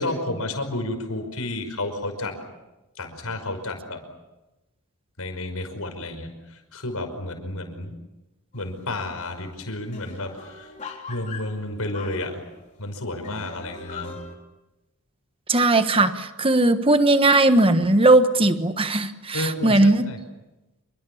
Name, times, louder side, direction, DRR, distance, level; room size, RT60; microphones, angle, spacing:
voice 1, 0.0-2.3 3.0-4.0 5.2-7.9 8.5-10.7 11.1-12.4 12.8-14.2 19.3-20.2, left 1 dB, 75° left, 6 dB, 5.4 m, -31 dB
sound 1, 8.5-9.0 9.3-9.4 9.6-12.7 13.2-14.3, left 4 dB, 30° left, 4.0 m, -41 dB
voice 2, 15.5-20.1, right 2 dB, 25° right, 9 dB, 1.2 m, -18 dB
27.5 x 24.5 x 7.2 m, 1.0 s
head